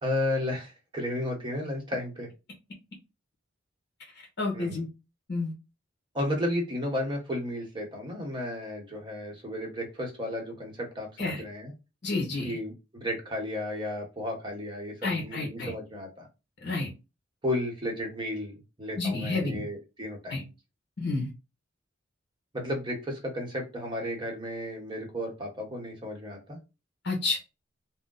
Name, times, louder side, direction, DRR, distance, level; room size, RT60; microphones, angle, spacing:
voice 1, 0.0-2.3 4.5-4.8 6.1-11.7 12.4-16.3 17.4-20.5 22.5-26.6, left 1 dB, 25° right, 1 dB, 1.0 m, -33 dB
voice 2, 4.4-4.9 5.3-5.5 11.2-11.4 12.0-12.6 15.0-15.7 16.6-16.9 19.0-19.6 20.3-20.4 21.0-21.3 27.0-27.4, left 3 dB, 60° left, -1 dB, 1.0 m, -30 dB
2.7 x 2.1 x 3.8 m, 0.27 s
head